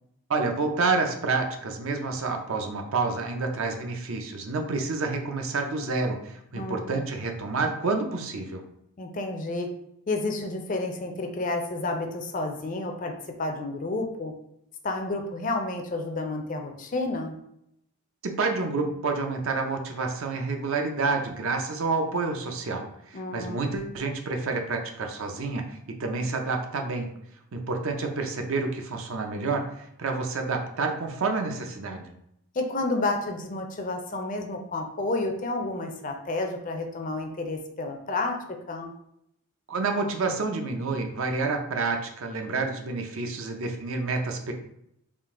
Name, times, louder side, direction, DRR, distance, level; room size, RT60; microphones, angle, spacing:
voice 1, 0.3-8.7 18.2-27.1 27.5-32.1 39.7-44.5, right 3 dB, 65° right, 4 dB, 0.5 m, -29 dB
voice 2, 6.5-6.9 9.0-9.7 10.1-13.1 13.4-14.3 14.8-17.3 23.1-23.6 32.5-38.4 38.7-38.9, left 2 dB, 35° left, 4 dB, 0.4 m, -30 dB
3.7 x 2.5 x 3.6 m, 0.77 s
head